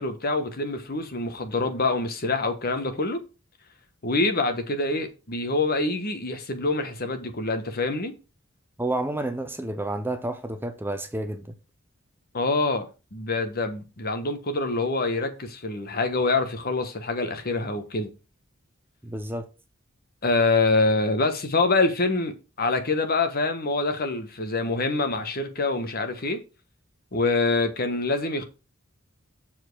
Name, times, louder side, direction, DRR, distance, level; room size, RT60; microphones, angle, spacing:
voice 1, 0.0-3.2 4.0-8.1 12.3-18.1 20.2-26.4 27.1-28.4, left 3 dB, 45° left, 1.3 m, -25 dB
voice 2, 8.8-11.5 19.0-19.5, right 1 dB, 10° right, 0.8 m, -30 dB
7.3 x 4.6 x 6.1 m
head